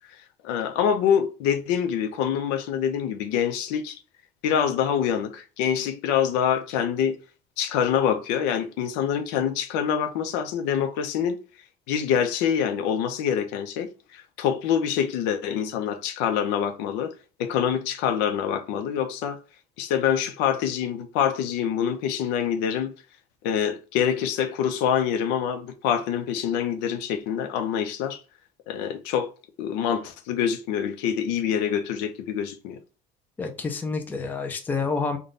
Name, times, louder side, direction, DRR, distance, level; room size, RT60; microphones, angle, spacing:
voice 1, 0.4-4.0 4.4-7.2 7.6-11.4 11.9-17.1 17.4-19.4 19.8-22.9 23.4-28.2 28.7-29.3 29.6-32.8, left 8 dB, 80° left, 0.6 m, -25 dB
voice 2, 33.4-35.2, left 4 dB, 10° left, 0.4 m, -28 dB
3.7 x 2.2 x 3.7 m
cardioid pair, 165°, 18 cm